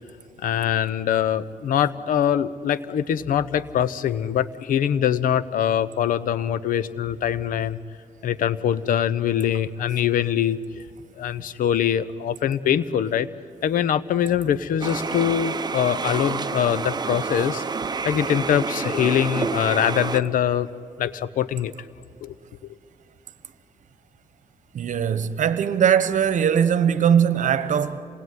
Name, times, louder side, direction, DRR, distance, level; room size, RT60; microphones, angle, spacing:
voice 1, 0.4-7.8 8.2-10.8 11.2-13.3 13.6-17.6 18.0-20.7 21.0-21.7 22.2-22.3 22.6-22.7, left 9 dB, 75° left, 0.8 m, -23 dB
sound 1, 14.8-20.2, right 5 dB, 30° right, 0.9 m, -28 dB
voice 2, 24.7-28.0, right 8 dB, 60° right, 1.2 m, -20 dB
27.5 x 19.5 x 9.5 m
cardioid pair, 85°, 14 cm